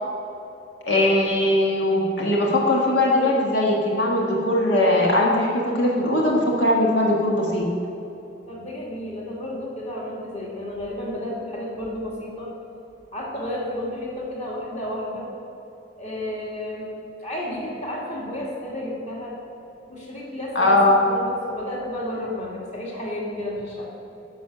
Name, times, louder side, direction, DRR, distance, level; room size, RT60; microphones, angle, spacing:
voice 1, 0.9-7.7 20.5-21.0, left 1 dB, 90° left, -3 dB, 1.5 m, -20 dB
voice 2, 8.5-12.6 13.1-15.3 16.0-16.9 17.2-19.4 19.9-23.9, left 1 dB, 40° left, -4 dB, 2.3 m, -32 dB
10.5 x 6.2 x 6.0 m, 2.9 s
head